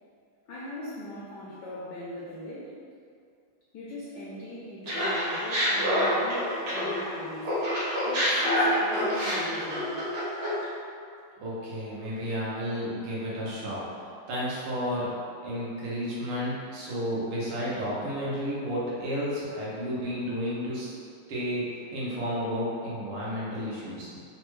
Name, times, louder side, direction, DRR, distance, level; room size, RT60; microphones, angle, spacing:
voice 1, 0.5-2.8 3.7-7.6 8.1-10.0, left 1 dB, 75° left, -8 dB, 0.9 m, -40 dB
Laughter, 4.9-7.1 7.4-10.6, equal, 70° right, 1.8 m, -27 dB
voice 2, 11.4-13.8 14.3-15.1 15.4-20.9 21.3-24.1, equal, 90° right, -8 dB, 1.8 m, -32 dB
4.1 x 2.2 x 3.0 m, 2.3 s
omnidirectional pair, 2.3 m